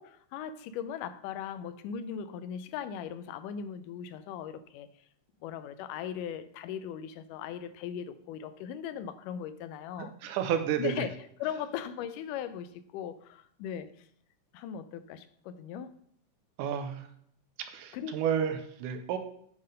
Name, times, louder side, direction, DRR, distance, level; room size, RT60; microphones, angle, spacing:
voice 1, 0.0-4.9 5.4-10.2 10.8-14.1 14.5-15.9 17.9-18.2, left 8 dB, 85° left, 2.1 m, -38 dB
voice 2, 10.2-10.9 16.6-17.1 17.7-19.2, right 9 dB, 90° right, 2.2 m, -31 dB
9.5 x 3.7 x 5.4 m
omnidirectional pair, 3.7 m